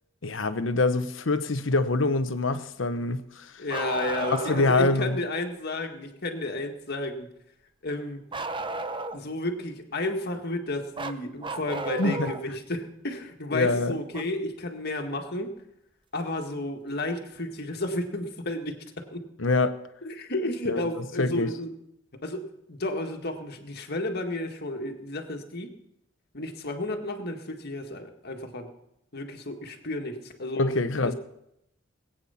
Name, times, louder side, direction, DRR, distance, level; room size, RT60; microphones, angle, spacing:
voice 1, 0.2-3.5 4.3-5.2 12.0-12.3 13.5-14.0 19.4-19.8 20.7-20.8 21.2-21.5 30.6-31.1, left 3 dB, 75° left, 1.0 m, -25 dB
voice 2, 3.6-7.3 7.8-8.2 9.1-15.5 16.1-18.8 19.1-19.2 20.0-21.7 22.2-25.7 26.3-28.7 29.1-30.7 31.0-31.1, left 1 dB, 55° left, 1.8 m, -32 dB
Bark, 3.7-4.8 8.3-9.4 11.0-12.5 14.1-14.2 16.2-16.3 17.4-17.5, right 3 dB, 25° right, 0.7 m, -33 dB
20.0 x 9.1 x 5.7 m
head